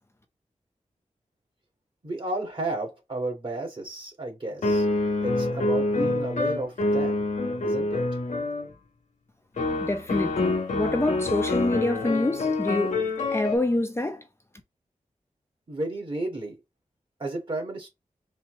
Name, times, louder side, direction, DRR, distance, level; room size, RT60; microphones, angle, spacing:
voice 1, 2.0-4.9 5.2-7.3 7.6-8.0 15.7-16.6 17.2-17.9, right 2 dB, 45° right, 2.0 m, -32 dB
sound 1, 4.6-8.7 9.6-13.6, left 2 dB, 80° left, 1.1 m, -26 dB
voice 2, 9.7-13.0 13.3-14.2, left 1 dB, 20° left, 0.6 m, -26 dB
4.3 x 2.8 x 2.8 m
wide cardioid pair, 105°, 12 cm